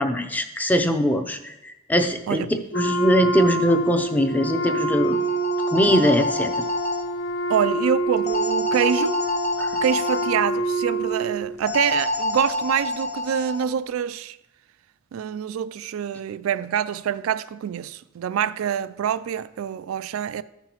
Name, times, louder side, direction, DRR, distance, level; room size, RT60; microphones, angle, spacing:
voice 1, 0.0-2.5 2.7-5.2 5.7-6.5 9.6-9.8, equal, 10° left, 0.6 m, -21 dB
Wind instrument woodwind instrument, 2.7-11.5, right 2 dB, 65° left, 1.0 m, -26 dB
sound 1, 5.0-7.0 8.3-10.3 11.7-13.6, left 2 dB, 35° left, 0.9 m, -27 dB
voice 2, 7.5-9.2 9.7-14.4 15.1-20.4, right 8 dB, 85° right, 0.3 m, -26 dB
14.0 x 5.7 x 2.9 m
head